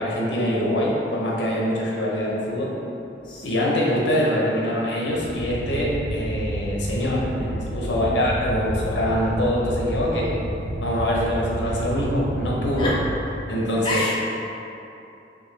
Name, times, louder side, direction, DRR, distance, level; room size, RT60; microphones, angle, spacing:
voice 1, 0.0-2.7 3.4-10.3 10.8-12.9 13.5-14.0, equal, 75° left, -4 dB, 0.8 m, -24 dB
voice 2, 3.2-3.7 7.8-9.1 11.6-11.8 12.8-13.0 13.7-14.1, left 1 dB, 25° left, -6 dB, 0.4 m, -31 dB
sound 1, 5.0-13.2, right 1 dB, 70° right, 0.5 m, -30 dB
4.6 x 2.6 x 3.2 m, 2.8 s
head